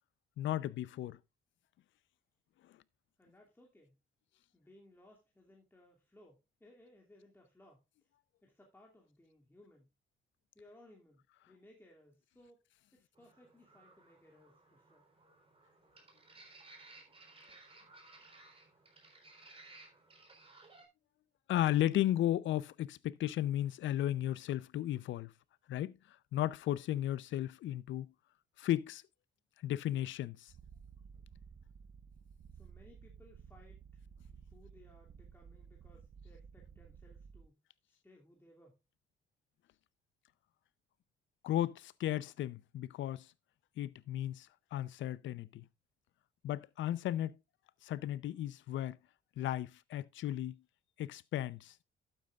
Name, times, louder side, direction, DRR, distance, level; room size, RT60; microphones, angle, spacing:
voice 1, 0.4-1.2 21.5-25.3 25.7-25.9 26.3-28.1 28.6-29.0 29.6-30.5 41.4-43.3 43.8-45.6 46.4-47.4 47.8-49.0 49.4-50.6 51.0-51.7, left 13 dB, 75° left, 0.6 m, -35 dB
voice 2, 3.2-3.9 4.5-7.8 8.4-9.9 10.5-12.6 12.9-15.1 32.5-34.0 34.5-37.6 37.9-38.8, left 1 dB, 10° left, 2.6 m, -62 dB
sound 1, 13.2-20.9, right 2 dB, 30° right, 3.9 m, -59 dB
Purr, 30.5-37.5, right 6 dB, 45° right, 0.8 m, -55 dB
12.0 x 9.0 x 2.4 m
cardioid pair, 90°, 20 cm